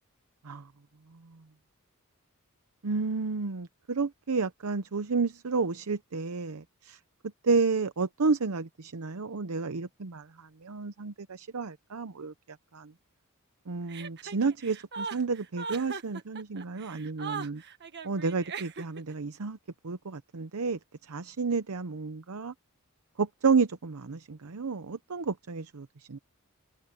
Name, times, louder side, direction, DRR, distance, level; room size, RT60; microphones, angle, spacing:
voice 1, 2.8-7.0 7.4-12.9 13.7-17.6 18.0-19.6 19.8-22.5 23.2-26.2, right 4 dB, 75° right, 0.7 m, -31 dB
Chuckle chortle, 13.9-19.1, right 5 dB, 50° right, 1.5 m, -39 dB
head